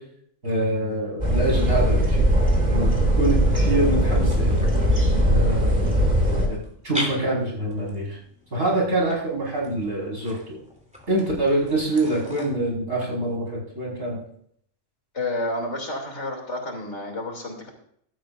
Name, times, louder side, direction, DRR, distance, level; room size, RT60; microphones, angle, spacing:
voice 1, 0.4-2.2 2.7-2.9 3.2-4.6 5.1-5.8 6.4-6.6 6.8-8.2 8.5-10.6 11.1-14.2, right 1 dB, 80° right, -4 dB, 5.8 m, -25 dB
sound 1, 1.2-6.5, equal, 30° right, 2.5 m, -20 dB
sound 2, 3.2-12.4, equal, 5° right, 3.0 m, -40 dB
voice 2, 15.1-17.7, left 2 dB, 60° left, 1 dB, 3.3 m, -30 dB
16.0 x 12.0 x 2.6 m, 0.65 s
omnidirectional pair, 1.4 m